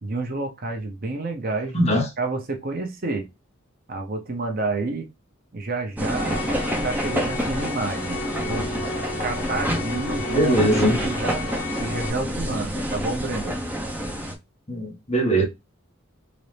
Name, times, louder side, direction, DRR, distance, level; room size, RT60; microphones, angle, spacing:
voice 1, 0.0-1.9 2.2-3.3 3.9-5.1 5.5-6.5 6.8-8.7 9.2-10.6 11.0-11.5 11.8-13.6, right 3 dB, 45° right, 0.7 m, -29 dB
voice 2, 1.7-2.1 10.3-11.0 14.7-15.4, right 1 dB, 30° left, 1.4 m, -21 dB
sound 1, 6.0-14.3, equal, 10° right, 0.7 m, -28 dB
sound 2, 6.1-12.1, left 3 dB, 85° left, 0.5 m, -33 dB
4.0 x 2.6 x 3.3 m
head